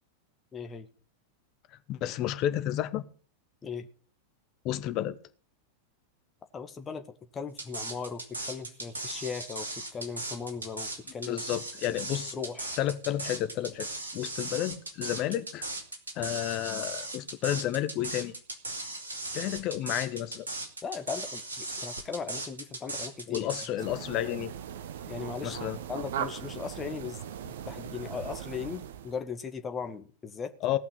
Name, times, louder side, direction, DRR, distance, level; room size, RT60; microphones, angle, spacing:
voice 1, 0.5-0.9 3.6-3.9 6.5-7.0 7.3-11.4 11.9-12.0 12.3-12.8 20.8-23.5 25.1-25.6 25.9-30.5, left 6 dB, 20° left, 1.5 m, -38 dB
voice 2, 1.9-3.0 4.6-5.2 11.3-12.4 12.8-13.9 14.1-15.6 16.2-18.3 19.3-20.5 23.3-24.5 25.4-25.8 30.6-30.8, left 12 dB, 40° left, 1.1 m, -31 dB
sound 1, 7.6-23.7, right 2 dB, 75° right, 2.6 m, -37 dB
sound 2, 23.8-29.2, right 9 dB, 60° right, 1.0 m, -39 dB
17.5 x 5.9 x 7.8 m
figure-of-eight pair, 90°, 0 cm